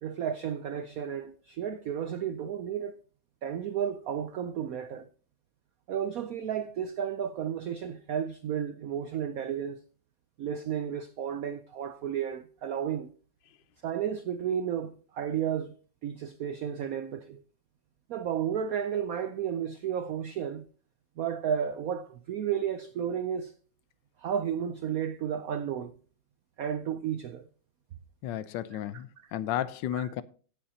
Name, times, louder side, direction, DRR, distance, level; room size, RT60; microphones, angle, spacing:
voice 1, 0.0-3.0 3.4-5.1 5.9-9.8 10.4-13.1 13.8-15.7 16.0-17.4 18.1-20.6 21.2-23.5 24.2-25.9 26.6-27.5 30.0-30.1, right 8 dB, 75° right, 0.8 m, -32 dB
voice 2, 28.2-30.2, left 11 dB, 75° left, 1.2 m, -33 dB
17.5 x 7.0 x 2.7 m
omnidirectional pair, 2.2 m